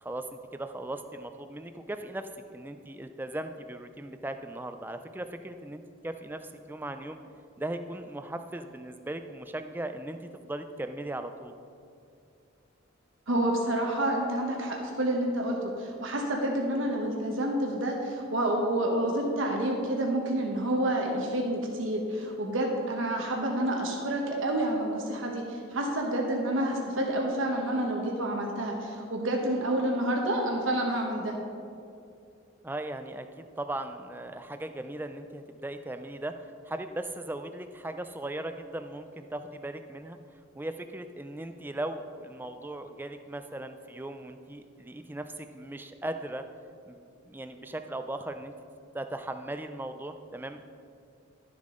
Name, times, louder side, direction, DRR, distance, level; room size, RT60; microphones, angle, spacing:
voice 1, 0.0-7.2 7.6-11.5 32.6-40.2 40.5-46.4 46.9-48.5 48.9-50.6, right 1 dB, 10° right, 8 dB, 0.4 m, -38 dB
voice 2, 13.3-31.3, right 1 dB, 75° right, 0 dB, 1.1 m, -29 dB
12.0 x 7.2 x 3.8 m, 2.4 s
head